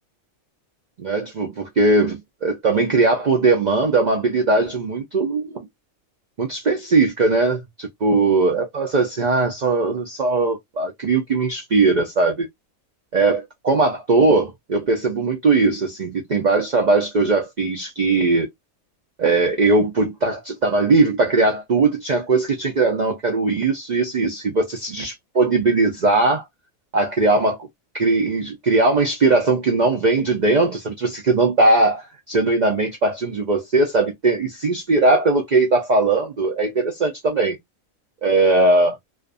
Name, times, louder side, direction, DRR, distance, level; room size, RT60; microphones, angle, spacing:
voice 1, 1.0-5.7 6.4-12.5 13.1-18.5 19.2-26.5 26.9-27.7 27.9-37.6 38.2-39.0, right 3 dB, 80° right, 0.4 m, -19 dB
2.4 x 2.4 x 2.4 m
omnidirectional pair, 1.4 m